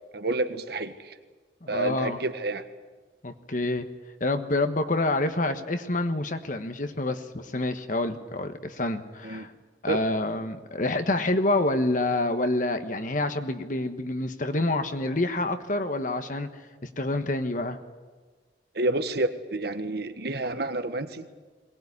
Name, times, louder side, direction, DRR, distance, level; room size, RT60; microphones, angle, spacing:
voice 1, 0.1-1.1 1.7-2.6 9.2-9.5 9.9-10.0 18.7-21.3, right 2 dB, 60° right, 9 dB, 1.5 m, -29 dB
voice 2, 1.6-2.2 3.2-3.9 4.2-9.5 9.8-16.5 16.8-17.8, left 2 dB, 45° left, 8 dB, 1.3 m, -27 dB
22.5 x 19.5 x 9.8 m, 1.3 s
head